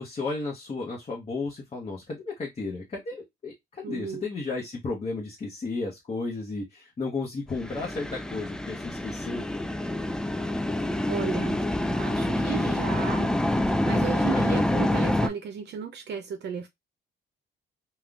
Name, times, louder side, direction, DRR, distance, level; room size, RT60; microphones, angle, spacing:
voice 1, 0.0-9.4 14.2-14.6, left 3 dB, 35° left, 0.9 m, -33 dB
voice 2, 3.8-4.2 11.1-11.6 11.9-13.3 13.6-16.7, right 7 dB, 60° right, 0.6 m, -34 dB
sound 1, 7.5-15.3, left 1 dB, 5° left, 0.3 m, -27 dB
3.6 x 2.3 x 2.3 m
cardioid pair, 90°, 20 cm